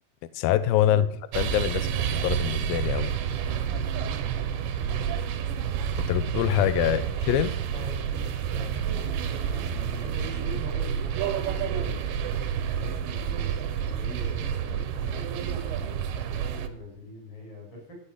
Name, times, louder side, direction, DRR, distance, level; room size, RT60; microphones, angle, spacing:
voice 1, 0.3-1.1 1.3-1.9 2.2-3.1 6.0-7.5, left 12 dB, 90° left, 14 dB, 2.0 m, -24 dB
sound 1, 1.3-16.7, right 8 dB, 85° right, 3.5 m, -29 dB
voice 2, 7.7-8.8 9.4-12.0 12.5-18.0, left 1 dB, 30° left, -2 dB, 8.8 m, -43 dB
15.0 x 6.5 x 9.9 m, 0.66 s
omnidirectional pair, 5.1 m